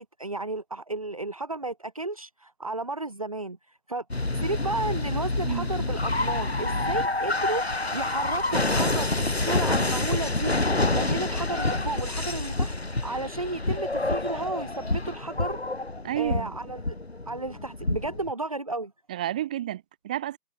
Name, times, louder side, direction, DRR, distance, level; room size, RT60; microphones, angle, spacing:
voice 1, 0.0-4.0 4.3-7.6 7.9-15.6 16.2-17.0 17.3-18.9, right 2 dB, 20° right, 3.5 m, -33 dB
sound 1, 4.1-18.3, left 2 dB, 40° left, 7.5 m, -27 dB
voice 2, 16.0-16.5 19.1-20.4, right 12 dB, 5° right, 5.3 m, -30 dB
figure-of-eight pair, 175°, 47 cm